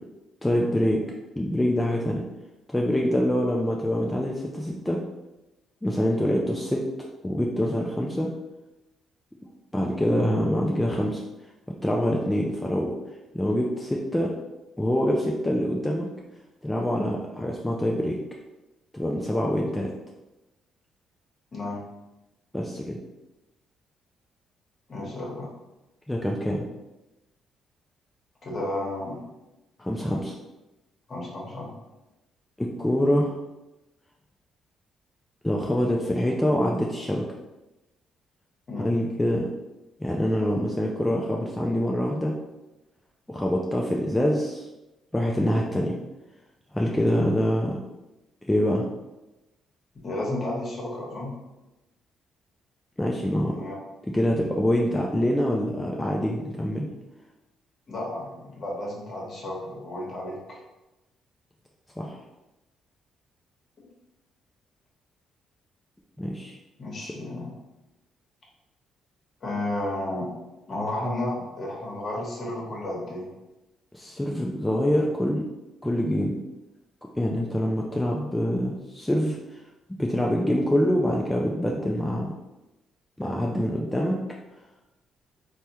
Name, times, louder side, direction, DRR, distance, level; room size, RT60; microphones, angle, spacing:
voice 1, 0.4-1.0 1.4-2.2 2.7-5.0 5.8-8.3 9.7-11.2 11.8-13.0 13.3-14.3 14.8-16.1 16.6-18.2 18.9-19.9 22.5-23.0 26.1-26.7 29.8-30.3 32.6-33.4 35.4-37.2 38.8-39.5 40.0-42.4 43.3-44.7 45.1-46.0 46.7-47.8 48.5-48.9 53.0-53.6 54.1-56.9 62.0-62.2 66.2-66.6 73.9-75.5 75.8-76.4 77.1-79.4 80.0-82.3 83.2-84.2, equal, 10° left, -2 dB, 0.3 m, -25 dB
voice 2, 21.5-21.8 24.9-25.5 28.4-29.2 31.1-31.7 38.7-39.0 50.0-51.3 53.5-53.8 57.9-60.6 63.8-63.9 66.8-67.5 69.4-70.3 70.7-73.3, left 1 dB, 45° left, -3 dB, 1.0 m, -32 dB
3.3 x 2.1 x 2.8 m, 1.0 s
cardioid pair, 85°, 0 cm